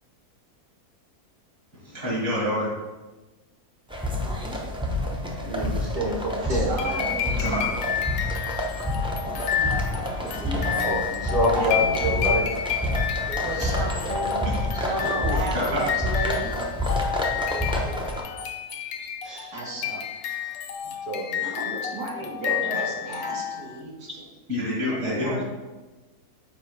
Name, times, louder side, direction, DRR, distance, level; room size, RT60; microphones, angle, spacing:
voice 1, 1.7-2.7 7.4-7.7 14.4-14.5 14.8-14.9 15.5-15.9 24.5-25.4, left 1 dB, 65° right, -6 dB, 2.5 m, -27 dB
sound 1, 3.9-18.2, left 1 dB, 5° right, 0.4 m, -28 dB
voice 2, 5.4-7.1 10.8-12.5 15.0-15.4 19.2-19.6 21.1-21.4 22.4-23.0, equal, 40° right, -3 dB, 0.9 m, -27 dB
voice 3, 6.4-7.6 9.6-9.7 10.4-10.8 11.5-12.4 13.4-14.4 14.7-16.5 19.5-20.0 21.4-24.2 24.9-25.4, right 2 dB, 90° right, -3 dB, 2.0 m, -33 dB
sound 2, 6.8-23.8, left 9 dB, 70° left, 1.1 m, -30 dB
7.8 x 4.8 x 3.3 m, 1.2 s
omnidirectional pair, 1.7 m